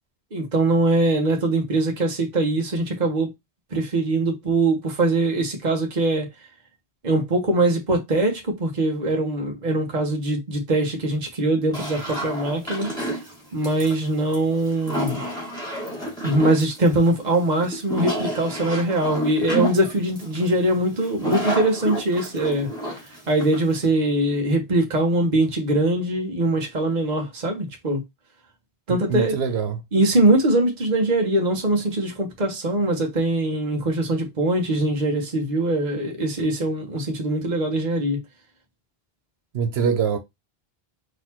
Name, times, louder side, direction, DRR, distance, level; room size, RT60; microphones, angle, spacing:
voice 1, 0.3-3.3 3.7-6.3 7.0-12.9 13.5-15.2 16.2-22.7 23.3-28.0 28.9-29.4 29.9-38.2, right 2 dB, 45° right, 1.2 m, -22 dB
sound 1, 11.7-23.8, right 1 dB, 5° left, 2.0 m, -30 dB
voice 2, 28.9-29.8 39.5-40.2, right 6 dB, 85° right, 1.0 m, -24 dB
4.1 x 2.9 x 4.2 m
omnidirectional pair, 1.0 m